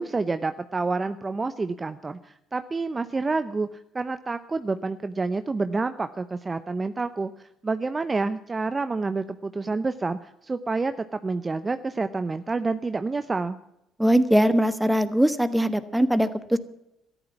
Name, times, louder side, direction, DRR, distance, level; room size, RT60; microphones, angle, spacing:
voice 1, 0.0-13.6, right 3 dB, 25° right, 11 dB, 0.8 m, -28 dB
voice 2, 14.0-16.6, equal, 5° right, 11 dB, 1.4 m, -21 dB
13.5 x 11.0 x 7.3 m, 0.82 s
hypercardioid pair, 60°, 0 cm